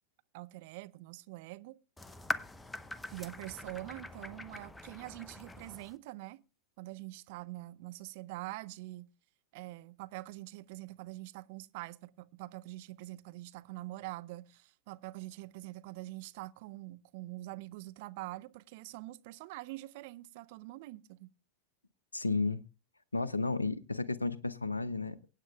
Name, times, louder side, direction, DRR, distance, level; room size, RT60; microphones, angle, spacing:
voice 1, 0.3-1.8 3.1-6.4 6.8-9.1 9.5-21.3, right 19 dB, 55° right, 0.5 m, -45 dB
sound 1, 2.0-6.0, left 2 dB, 10° left, 0.7 m, -42 dB
voice 2, 22.1-22.6 23.1-25.2, left 3 dB, 90° left, 0.5 m, -32 dB
23.5 x 9.1 x 2.3 m
figure-of-eight pair, 90°, 0 cm